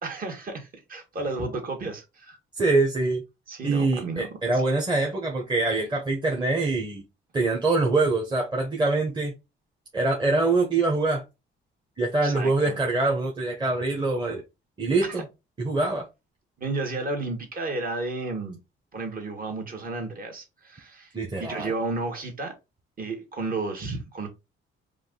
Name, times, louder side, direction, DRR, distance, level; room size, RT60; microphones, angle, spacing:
voice 1, 0.0-2.4 3.5-4.6 12.2-12.8 15.0-15.2 16.6-18.6 18.9-21.1 21.4-22.6 23.0-24.3, right 3 dB, 45° right, 1.8 m, -32 dB
voice 2, 2.6-3.2 3.6-7.0 7.3-9.3 9.9-11.2 12.0-14.4 14.8-15.3 15.6-16.1 21.1-21.7, right 3 dB, 20° right, 1.2 m, -24 dB
4.9 x 2.7 x 3.8 m
cardioid pair, 125°, 21 cm